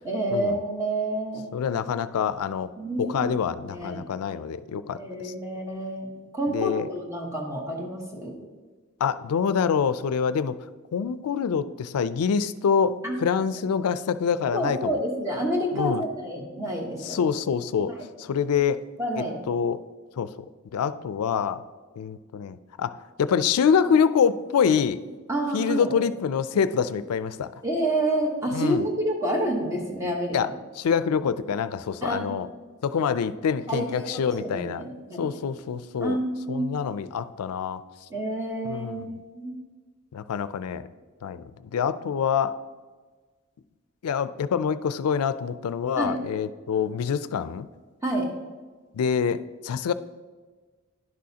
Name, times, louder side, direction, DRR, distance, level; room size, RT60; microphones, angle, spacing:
voice 1, 0.0-1.5 2.8-3.4 3.7-4.1 4.9-8.3 13.0-13.2 14.5-17.2 19.0-19.4 25.3-25.9 27.6-30.5 32.0-32.4 33.7-35.3 36.0-36.7 38.1-39.5 46.0-46.2 48.0-48.3, right 1 dB, 15° right, 0 dB, 1.1 m, -28 dB
voice 2, 1.5-2.7 3.0-5.0 5.2-5.3 6.5-6.9 9.0-10.6 10.9-15.0 15.7-16.0 17.0-17.9 18.2-18.8 19.2-19.8 20.2-20.3 20.7-21.6 22.0-22.9 23.2-25.0 25.5-27.5 28.5-28.8 30.3-30.5 30.8-32.5 32.8-34.8 35.2-36.2 36.5-37.8 38.6-39.0 40.1-40.9 41.2-41.4 41.7-42.6 44.0-47.7 48.9-49.9, left 7 dB, 90° left, 14 dB, 0.4 m, -25 dB
11.0 x 6.3 x 2.8 m, 1.4 s
head